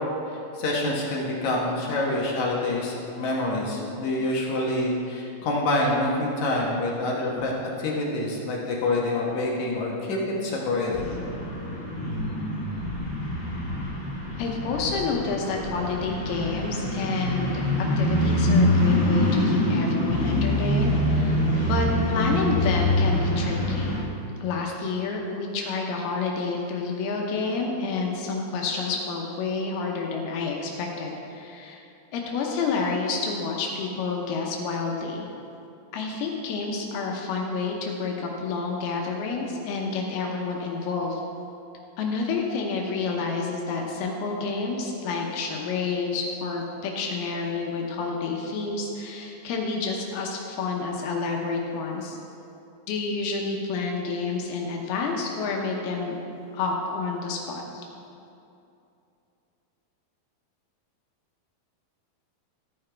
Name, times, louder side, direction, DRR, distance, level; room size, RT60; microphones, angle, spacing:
voice 1, 0.5-7.5 7.8-11.1, left 2 dB, 60° left, -3 dB, 2.1 m, -26 dB
sound 1, 10.9-24.0, left 1 dB, 25° left, 0.8 m, -25 dB
voice 2, 14.4-21.4 21.7-24.0 24.4-31.8 32.1-35.3 35.9-41.2 42.0-52.2 52.9-56.2 56.5-57.8, left 4 dB, 85° left, 0 dB, 2.9 m, -29 dB
14.0 x 9.6 x 3.4 m, 2.7 s
omnidirectional pair, 4.4 m